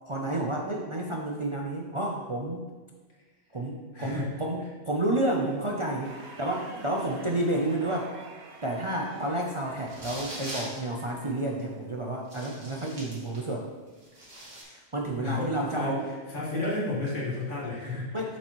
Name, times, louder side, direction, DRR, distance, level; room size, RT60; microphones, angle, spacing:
voice 1, 0.1-2.7 3.5-8.1 8.6-13.7 14.6-16.0 18.1-18.4, right 1 dB, 35° right, -1 dB, 0.6 m, -30 dB
voice 2, 3.9-4.3 6.3-6.4 6.7-6.8 15.2-15.9 16.3-18.2, left 2 dB, 85° left, -6 dB, 2.5 m, -32 dB
crowd roar, 6.0-12.2, right 3 dB, 65° right, 1.2 m, -49 dB
sound 1, 9.8-10.8 11.6-11.7 12.3-13.5 13.9-14.6, right 1 dB, 80° right, 2.4 m, -41 dB
7.3 x 6.9 x 3.1 m, 1.3 s
omnidirectional pair, 1.3 m